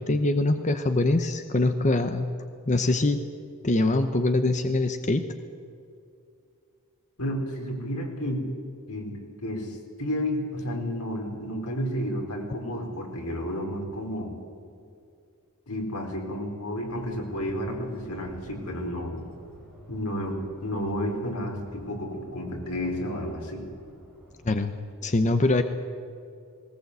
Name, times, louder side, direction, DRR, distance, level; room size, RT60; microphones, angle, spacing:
voice 1, 0.0-2.3 2.7-3.2 3.6-5.2 24.4-24.7 25.0-25.6, left 2 dB, 35° left, 8 dB, 0.9 m, -23 dB
voice 2, 7.2-8.4 8.9-14.3 15.7-19.2 19.9-23.6, equal, 90° left, 1 dB, 4.5 m, -31 dB
sound 1, 16.8-24.6, equal, 5° left, 5.8 m, -50 dB
19.5 x 19.0 x 8.2 m, 2.4 s
head